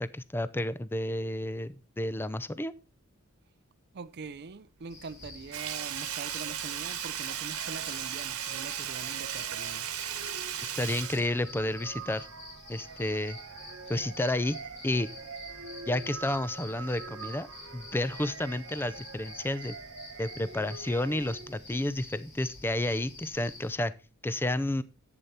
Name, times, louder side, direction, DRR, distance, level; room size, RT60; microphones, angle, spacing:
voice 1, 0.0-2.7 10.6-12.3 12.7-13.4 13.9-14.6 14.8-15.1 15.9-17.5 17.7-19.7 20.2-23.9 24.2-24.8, left 1 dB, 10° left, 0.5 m, -31 dB
voice 2, 3.9-9.9, right 4 dB, 50° right, 0.5 m, -43 dB
sound 1, 4.9-23.7, left 3 dB, 55° left, 4.8 m, -48 dB
sound 2, 5.5-21.7, right 5 dB, 65° right, 1.1 m, -46 dB
Sink (filling or washing), 5.5-12.0 12.4-12.5, right 11 dB, 90° right, 1.5 m, -36 dB
11.0 x 8.1 x 4.1 m
head